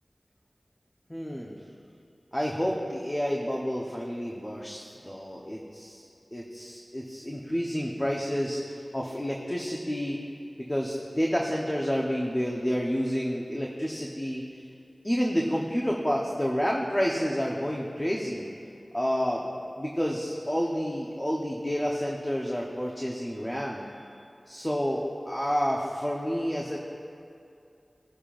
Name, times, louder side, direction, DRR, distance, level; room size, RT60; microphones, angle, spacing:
voice 1, 1.1-1.5 2.3-6.0 6.3-10.2 10.6-14.4 15.0-18.5 18.9-19.4 19.8-23.8 24.5-26.8, equal, 20° left, -2 dB, 1.0 m, -29 dB
20.0 x 6.7 x 2.6 m, 2.5 s
wide cardioid pair, 50°, 0 cm